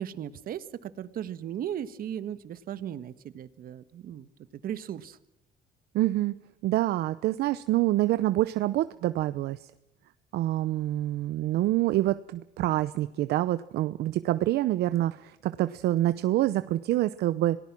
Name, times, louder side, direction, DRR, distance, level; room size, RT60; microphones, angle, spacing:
voice 1, 0.0-5.2, right 10 dB, 60° right, 14 dB, 1.4 m, -37 dB
voice 2, 5.9-6.4 6.6-9.7 10.3-17.6, right 15 dB, 75° right, 14 dB, 0.8 m, -26 dB
26.5 x 18.5 x 6.1 m, 0.91 s
cardioid pair, 110°, 17 cm